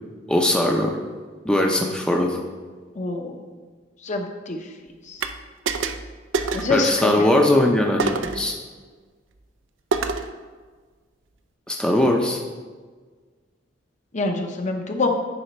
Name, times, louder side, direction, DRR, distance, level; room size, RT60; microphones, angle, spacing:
voice 1, 0.3-0.9 1.4-2.4 6.7-8.6 11.7-12.4, left 1 dB, 5° left, 0 dB, 0.6 m, -20 dB
voice 2, 2.9-3.4 4.0-4.6 5.1-5.2 6.5-7.3 14.1-15.1, left 3 dB, 40° left, 4 dB, 0.8 m, -25 dB
sound 1, 5.2-5.3 5.7-6.1 6.3-6.8 8.0-8.4 9.9-10.3, right 4 dB, 80° right, 0.5 m, -25 dB
9.7 x 4.9 x 4.3 m, 1.4 s
head